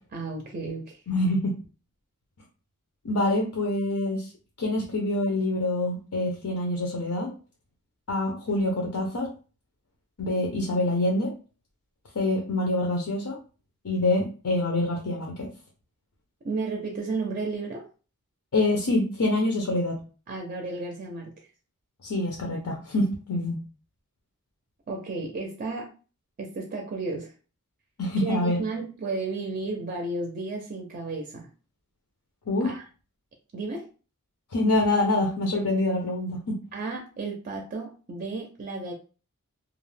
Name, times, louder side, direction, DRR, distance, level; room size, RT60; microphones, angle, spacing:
voice 1, 0.1-1.0 16.4-17.8 20.3-21.3 24.9-25.9 26.4-27.3 28.2-31.5 32.6-32.8 33.5-33.8 36.7-38.9, right 3 dB, 40° right, 1 dB, 0.4 m, -33 dB
voice 2, 1.1-1.5 3.0-4.3 4.6-7.3 8.1-9.3 10.2-11.3 12.1-13.4 13.8-15.5 18.5-20.0 22.0-23.6 28.0-28.6 32.5-32.7 34.5-36.6, left 2 dB, 80° left, 0 dB, 0.6 m, -26 dB
2.4 x 2.0 x 3.2 m, 0.36 s
head